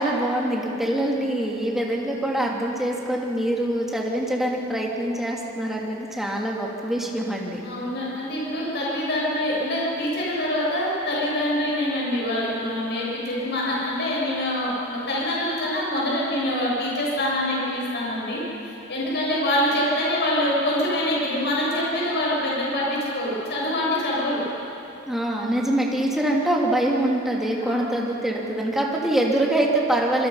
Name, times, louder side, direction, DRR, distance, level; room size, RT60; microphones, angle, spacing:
voice 1, 0.0-7.6 25.1-30.3, right 1 dB, ahead, -2 dB, 2.9 m, -24 dB
voice 2, 7.6-24.4 26.4-26.5 27.7-27.8, left 1 dB, 55° left, -5 dB, 7.2 m, -25 dB
25.5 x 23.0 x 5.7 m, 2.9 s
head